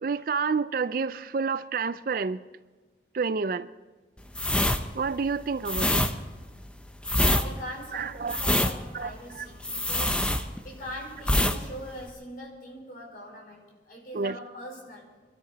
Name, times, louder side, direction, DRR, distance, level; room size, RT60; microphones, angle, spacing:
voice 1, 0.0-2.4 3.1-3.7 4.9-6.1 7.9-8.4 8.9-9.1 14.1-14.3, right 5 dB, 50° right, 0.4 m, -29 dB
sound 1, 4.3-10.9 11.2-11.6 11.9-12.1, left 1 dB, 5° left, 0.7 m, -25 dB
voice 2, 7.2-15.1, left 1 dB, 50° left, 5.0 m, -41 dB
25.0 x 13.0 x 4.0 m
head